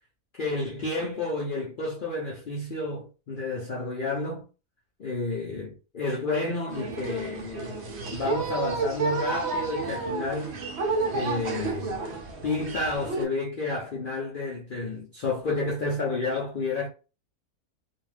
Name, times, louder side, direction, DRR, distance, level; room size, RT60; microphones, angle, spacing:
voice 1, 0.4-4.5 5.0-7.8 8.1-10.6 11.0-16.9, left 3 dB, 60° left, 0.5 m, -31 dB
sound 1, 6.7-13.3, right 3 dB, 60° right, 0.7 m, -30 dB
2.5 x 2.3 x 3.2 m
omnidirectional pair, 1.6 m